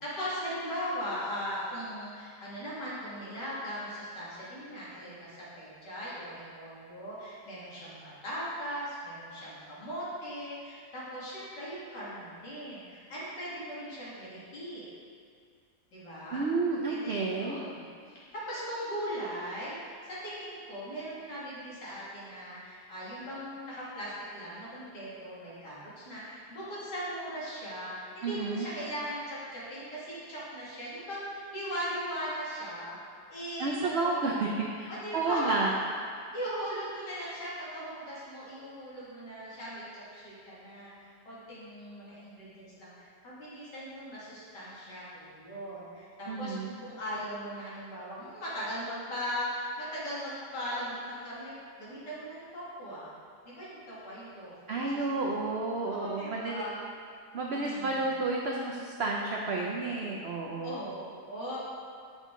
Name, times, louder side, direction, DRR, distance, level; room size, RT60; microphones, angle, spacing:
voice 1, 0.0-14.8 15.9-16.5 16.9-17.7 18.1-33.0 33.3-34.3 34.9-35.8 36.3-46.6 46.8-53.1 53.4-55.2 55.9-56.8 57.5-58.0 60.6-61.6, equal, 85° left, -9 dB, 2.6 m, -39 dB
voice 2, 16.3-17.6 28.2-28.7 33.6-35.7 36.1-36.2 46.3-46.7 54.7-56.7 57.3-60.8, right 3 dB, 85° right, -2 dB, 0.5 m, -31 dB
7.4 x 5.2 x 3.7 m, 2.2 s
omnidirectional pair, 1.8 m